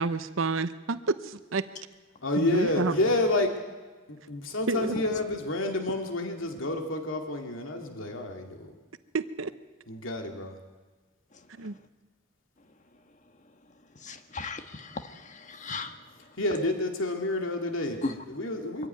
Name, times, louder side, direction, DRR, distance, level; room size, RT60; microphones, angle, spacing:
voice 1, 0.0-1.6 2.4-2.9 4.7-5.0 9.1-9.5 11.6-11.8, right 4 dB, 85° right, 12 dB, 0.8 m, -29 dB
voice 2, 2.2-3.5 4.1-8.7 9.9-10.5 16.4-18.0 18.3-18.9, left 2 dB, 85° left, 3 dB, 2.5 m, -29 dB
voice 3, 14.0-16.0 18.0-18.1, left 3 dB, 40° left, 7 dB, 1.5 m, -36 dB
24.0 x 15.0 x 9.5 m, 1.3 s
head